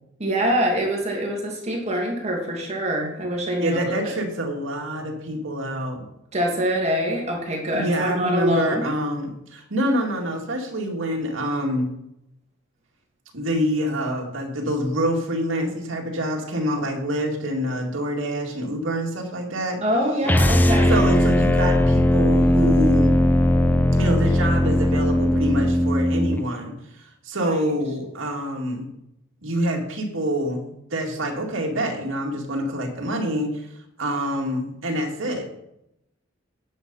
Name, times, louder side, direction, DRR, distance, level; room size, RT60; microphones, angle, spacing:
voice 1, 0.2-4.1 6.3-8.9 19.8-21.0 27.4-27.6, equal, 30° right, 0 dB, 2.3 m, -24 dB
voice 2, 3.6-6.1 7.7-11.9 13.3-19.8 20.8-23.2 24.0-28.9 29.4-35.5, equal, 70° right, 1 dB, 2.2 m, -26 dB
sound 1, 20.2-26.4, left 1 dB, 10° left, 0.5 m, -18 dB
9.8 x 6.7 x 5.4 m, 0.82 s
head